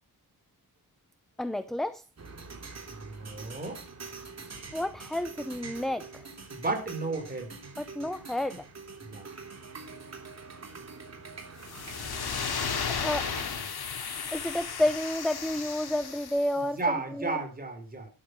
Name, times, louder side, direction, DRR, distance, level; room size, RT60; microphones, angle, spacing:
voice 1, 1.4-2.0 4.7-6.3 7.8-8.7 12.9-13.3 14.3-17.4, left 1 dB, ahead, 0.6 m, -30 dB
sound 1, 2.2-13.4, right 4 dB, 45° right, 3.3 m, -45 dB
voice 2, 3.0-3.8 6.5-7.5 9.1-9.3 16.8-18.1, right 3 dB, 25° right, 4.6 m, -33 dB
sound 2, 11.6-16.5, left 6 dB, 80° left, 2.7 m, -34 dB
12.5 x 12.0 x 4.7 m
wide cardioid pair, 180°, 38 cm